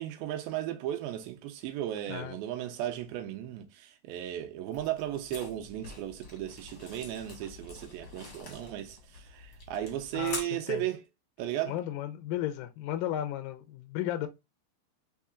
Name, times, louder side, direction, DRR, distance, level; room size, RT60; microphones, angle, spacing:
voice 1, 0.0-11.0 11.4-11.8, right 12 dB, 90° right, 2.4 m, -35 dB
sound 1, 4.7-10.4, left 3 dB, 50° left, 1.5 m, -46 dB
voice 2, 10.1-10.8 11.7-14.3, left 12 dB, 80° left, 2.2 m, -34 dB
5.5 x 3.7 x 2.4 m
omnidirectional pair, 4.2 m